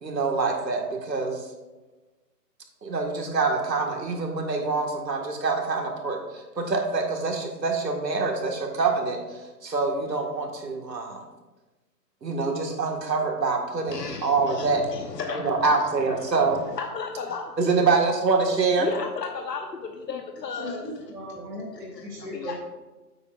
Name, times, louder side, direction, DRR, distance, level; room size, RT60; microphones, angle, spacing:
voice 1, 0.0-1.5 2.8-11.2 12.2-14.8 15.3-16.6 17.6-18.9, right 4 dB, 90° right, 2 dB, 1.9 m, -25 dB
voice 2, 13.9-17.9 18.8-20.9 21.9-22.5, left 5 dB, 80° left, 3 dB, 1.1 m, -34 dB
voice 3, 20.5-22.6, equal, 60° right, -6 dB, 2.6 m, -37 dB
9.6 x 7.9 x 2.5 m, 1.1 s
hypercardioid pair, 145°, 48 cm